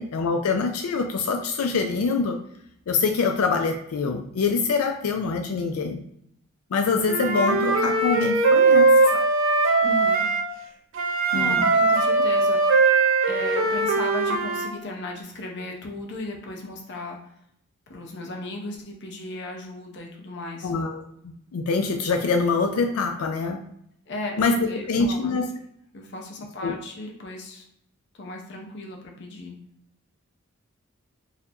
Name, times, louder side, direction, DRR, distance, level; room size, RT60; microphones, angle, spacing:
voice 1, 0.0-2.4 2.9-6.0 6.7-8.9 11.3-11.7 12.1-12.2 20.6-23.6 24.4-24.6 24.9-25.5 26.6-26.7, left 4 dB, 90° left, 4 dB, 0.4 m, -25 dB
Wind instrument woodwind instrument, 7.1-10.4 10.9-14.7, right 3 dB, 65° right, 0.5 m, -20 dB
voice 2, 9.8-10.3 11.3-17.4 17.9-20.7 24.1-25.4 25.9-27.7 28.1-29.6, left 2 dB, 55° left, 1 dB, 0.7 m, -36 dB
4.0 x 2.6 x 2.8 m, 0.73 s
head